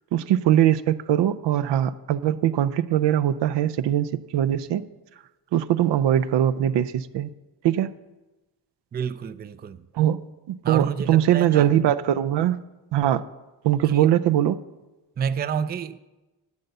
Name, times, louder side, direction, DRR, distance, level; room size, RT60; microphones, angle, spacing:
voice 1, 0.1-4.8 5.5-7.3 7.6-7.9 9.9-10.2 10.5-12.6 12.9-13.2 13.6-14.6, right 11 dB, 80° right, 0.6 m, -21 dB
voice 2, 8.9-9.8 10.6-11.7 13.9-14.1 15.2-16.0, right 7 dB, 25° right, 0.4 m, -29 dB
12.0 x 5.4 x 7.9 m
cardioid pair, 90°, 41 cm